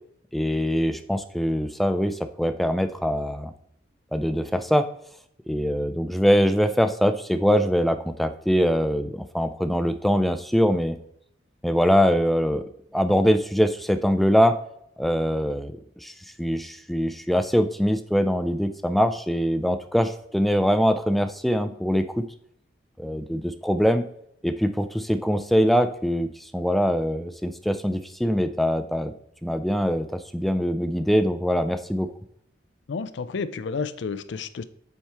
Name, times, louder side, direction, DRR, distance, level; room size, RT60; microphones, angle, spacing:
voice 1, 0.3-3.5 4.1-4.9 5.5-11.0 11.6-12.6 12.9-14.6 15.0-16.1 16.4-22.3 23.0-24.0 24.4-29.1 29.4-32.1, equal, ahead, 9 dB, 0.4 m, -23 dB
voice 2, 32.9-34.6, left 5 dB, 65° left, 14 dB, 0.4 m, -31 dB
7.3 x 4.7 x 3.4 m, 0.72 s
head